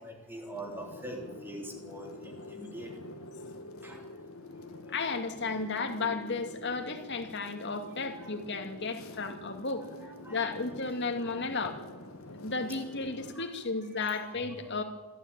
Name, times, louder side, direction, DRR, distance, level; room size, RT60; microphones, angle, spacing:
voice 1, 0.0-3.0 3.6-4.9 8.2-8.4 10.2-10.4 13.0-13.1 13.3-13.5 14.4-14.6, right 1 dB, 10° right, 1 dB, 3.7 m, -44 dB
sound 1, 0.5-13.4, left 2 dB, 75° left, 1.6 m, -47 dB
voice 2, 4.9-9.8 10.3-11.8 12.4-14.8, left 3 dB, 55° left, 5 dB, 2.4 m, -34 dB
26.0 x 12.5 x 9.0 m, 1.2 s
head